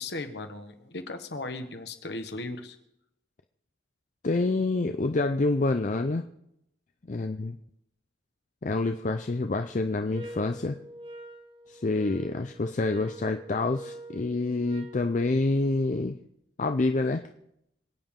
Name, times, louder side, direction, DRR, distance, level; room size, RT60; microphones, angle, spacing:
voice 1, 0.0-2.8, left 2 dB, 60° left, 7 dB, 1.4 m, -37 dB
voice 2, 4.2-6.2 7.1-7.6 8.6-10.8 11.7-16.2 16.6-17.2, left 2 dB, 40° left, 7 dB, 0.5 m, -27 dB
sound 1, 10.1-15.1, right 1 dB, 25° right, 0.9 m, -45 dB
27.0 x 9.1 x 3.7 m, 0.81 s
head